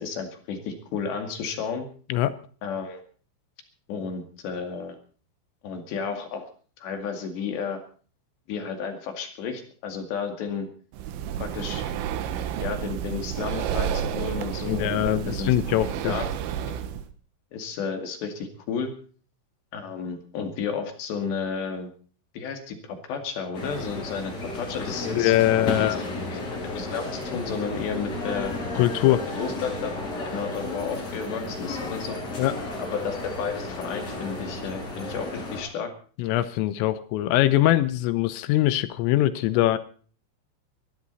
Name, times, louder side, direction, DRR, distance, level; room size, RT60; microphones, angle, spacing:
voice 1, 0.0-1.9 2.6-3.0 3.9-5.0 5.6-6.5 6.8-7.8 8.5-10.7 11.4-11.8 12.6-15.5 16.0-16.3 16.7-16.8 17.5-18.9 19.7-21.9 22.3-25.8 26.3-28.6 29.3-29.9 30.3-32.2 32.8-35.9, left 6 dB, 60° left, 5 dB, 4.2 m, -32 dB
Breathing, 10.9-17.1, right 9 dB, 80° right, 3.7 m, -30 dB
voice 2, 14.7-16.1 25.1-26.0 28.8-29.2 32.4-32.5 36.2-39.8, left 14 dB, 80° left, 13 dB, 3.5 m, -22 dB
sound 1, 23.5-35.6, left 2 dB, 40° left, 8.5 m, -33 dB
21.0 x 14.0 x 4.1 m, 0.42 s
omnidirectional pair, 5.9 m